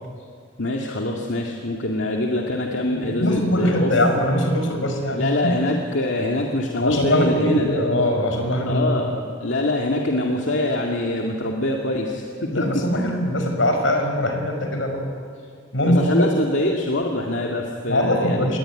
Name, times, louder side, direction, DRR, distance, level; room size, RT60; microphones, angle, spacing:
voice 1, 0.6-3.9 5.1-7.8 8.6-13.2 15.8-18.5, left 1 dB, 70° left, 0 dB, 2.3 m, -24 dB
voice 2, 2.9-5.5 6.8-8.8 12.5-15.0 15.7-16.3 17.9-18.6, left 1 dB, 85° left, 5 dB, 5.5 m, -21 dB
28.5 x 21.5 x 9.1 m, 2.3 s
head